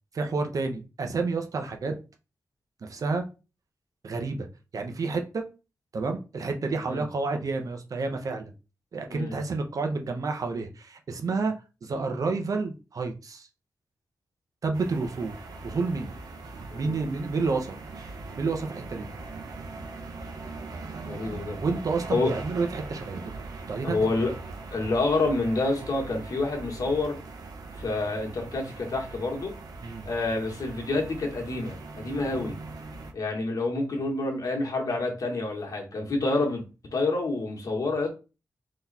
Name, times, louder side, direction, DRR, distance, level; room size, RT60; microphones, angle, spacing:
voice 1, 0.1-1.9 2.8-3.2 4.0-4.5 4.7-5.4 5.9-8.5 8.9-11.5 11.8-13.5 14.6-15.4 15.6-16.1 16.7-17.8 18.4-19.1 21.6-23.2 23.7-24.2 29.8-30.0 32.3-32.5, right 4 dB, 60° right, 4 dB, 0.9 m, -29 dB
sound 1, 14.7-33.1, right 3 dB, 80° right, 1.0 m, -41 dB
voice 2, 21.0-21.6 22.1-22.3 23.8-24.3 24.7-27.2 27.8-29.6 30.0-32.6 33.1-36.7 36.9-38.1, left 2 dB, 60° left, 1 dB, 1.6 m, -28 dB
4.0 x 3.2 x 4.2 m, 0.31 s
wide cardioid pair, 100°, 7 cm